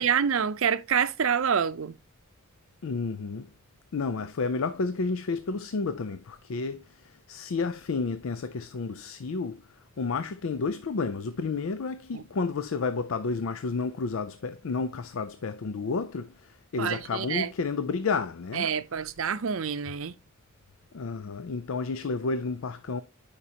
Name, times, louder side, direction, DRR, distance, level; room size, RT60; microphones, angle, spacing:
voice 1, 0.0-1.9 12.1-12.2 16.8-17.5 18.5-20.1, right 7 dB, 75° right, 0.6 m, -27 dB
voice 2, 2.8-3.5 3.9-9.6 10.0-18.7 20.9-23.0, left 4 dB, 70° left, 0.5 m, -31 dB
11.0 x 5.1 x 2.8 m
head